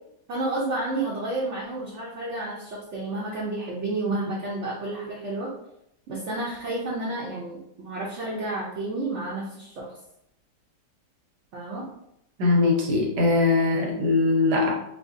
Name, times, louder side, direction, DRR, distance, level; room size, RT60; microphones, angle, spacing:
voice 1, 0.3-5.5 6.1-9.9 11.5-11.9, right 2 dB, 60° right, -4 dB, 0.8 m, -31 dB
voice 2, 12.4-14.7, left 3 dB, 75° right, -1 dB, 1.4 m, -21 dB
4.7 x 2.0 x 2.5 m, 0.79 s
omnidirectional pair, 1.8 m